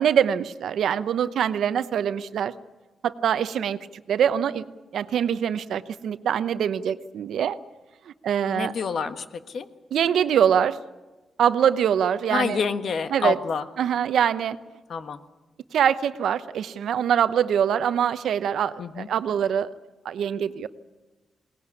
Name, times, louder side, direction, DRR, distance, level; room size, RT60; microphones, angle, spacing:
voice 1, 0.0-2.5 3.0-3.8 4.1-4.6 4.9-7.6 8.2-8.7 9.9-10.8 11.4-12.6 13.1-13.4 13.8-14.6 15.7-19.7 20.0-20.7, right 8 dB, 85° right, 13 dB, 0.8 m, -23 dB
voice 2, 8.5-9.7 12.3-13.6 14.9-15.2 18.8-19.1, left 5 dB, 60° left, 10 dB, 1.4 m, -28 dB
21.5 x 19.0 x 9.8 m, 1.2 s
cardioid pair, 120°, 0 cm